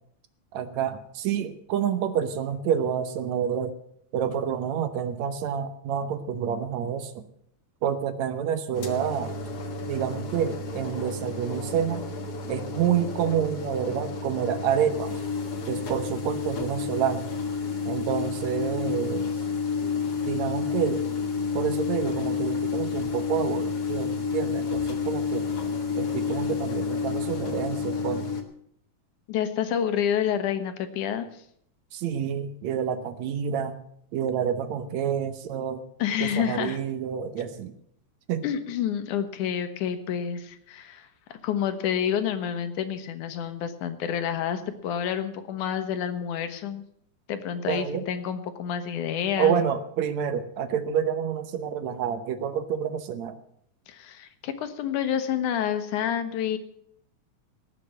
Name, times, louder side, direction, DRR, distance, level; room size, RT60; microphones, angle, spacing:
voice 1, 0.5-3.7 4.1-7.2 7.8-9.3 9.9-12.0 12.5-15.2 15.7-17.3 17.9-19.3 20.3-21.0 21.5-25.5 26.0-28.3 31.9-33.8 34.1-35.9 36.2-37.7 38.3-38.5 47.7-48.0 49.4-53.4, right 8 dB, 70° right, 11 dB, 2.1 m, -28 dB
sound 1, 8.7-28.4, left 5 dB, 40° left, 1.5 m, -30 dB
voice 2, 29.3-31.3 36.0-36.8 38.4-46.8 47.3-49.6 53.9-56.6, left 9 dB, 80° left, 10 dB, 2.6 m, -29 dB
18.5 x 6.9 x 7.5 m, 0.69 s
omnidirectional pair, 3.5 m